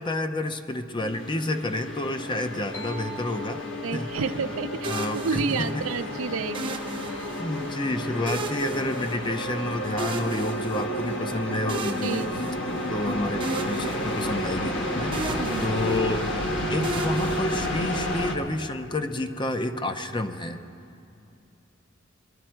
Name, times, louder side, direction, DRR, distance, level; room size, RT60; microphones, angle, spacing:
voice 1, 0.0-3.7 3.9-4.1 4.8-5.8 7.4-12.2 12.9-15.2 15.6-16.3 16.7-20.6, left 2 dB, 25° left, 7 dB, 0.5 m, -29 dB
sound 1, 1.0-18.4, equal, 60° left, 1.3 m, -31 dB
sound 2, 2.7-6.4, right 4 dB, 75° left, 1.8 m, -46 dB
voice 2, 3.8-6.8 7.1-7.3 12.0-12.3 15.4-15.7, right 4 dB, 85° right, 10 dB, 0.5 m, -30 dB
sound 3, 4.8-6.0 6.5-7.7 8.3-9.6 10.0-11.2 11.7-13.0 13.4-14.8 15.1-16.3 16.8-18.2, right 2 dB, 25° right, 0.8 m, -36 dB
22.0 x 11.5 x 4.4 m, 2.6 s
head